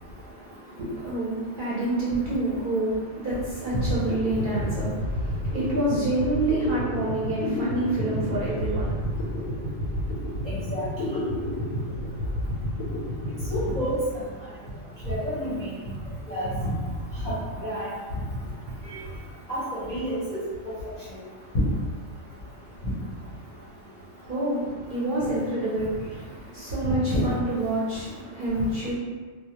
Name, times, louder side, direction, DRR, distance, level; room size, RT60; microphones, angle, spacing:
voice 1, 0.0-9.5 24.2-28.9, right 1 dB, 55° right, -9 dB, 0.6 m, -28 dB
sound 1, 3.8-3.9 4.1-14.6, left 1 dB, 90° left, 1.0 m, -30 dB
voice 2, 10.5-10.9 13.5-14.2 15.0-15.7 16.3-16.7 17.2-17.3 17.6-17.9 18.8-19.0 19.5-20.4 26.8-26.9, equal, 45° left, -10 dB, 0.6 m, -29 dB
2.2 x 2.0 x 2.8 m, 1.5 s
omnidirectional pair, 1.3 m